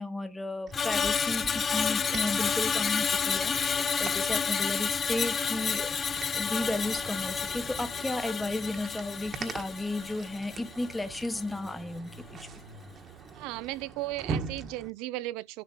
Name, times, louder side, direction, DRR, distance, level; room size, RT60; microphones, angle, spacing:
voice 1, 0.0-5.9 6.4-12.4, left 2 dB, 5° left, 1.0 m, -34 dB
Screech, 0.7-11.1 11.4-11.7, left 6 dB, 25° left, 0.6 m, -30 dB
sound 1, 0.7-14.9, right 5 dB, 30° right, 1.4 m, -43 dB
voice 2, 13.3-15.6, right 17 dB, 55° right, 0.5 m, -36 dB
11.0 x 7.2 x 4.5 m
supercardioid pair, 115°, 0 cm